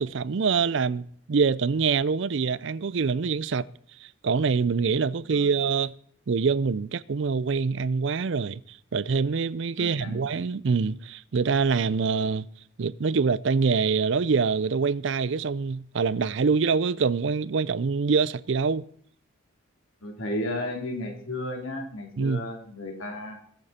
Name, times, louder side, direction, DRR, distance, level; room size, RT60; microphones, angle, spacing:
voice 1, 0.0-3.7 4.2-5.9 6.3-12.5 12.8-18.8 22.2-22.4, right 5 dB, 65° right, 0.5 m, -25 dB
voice 2, 9.8-10.3 20.0-23.3, left 1 dB, 85° left, 3.2 m, -33 dB
21.0 x 8.2 x 4.3 m
head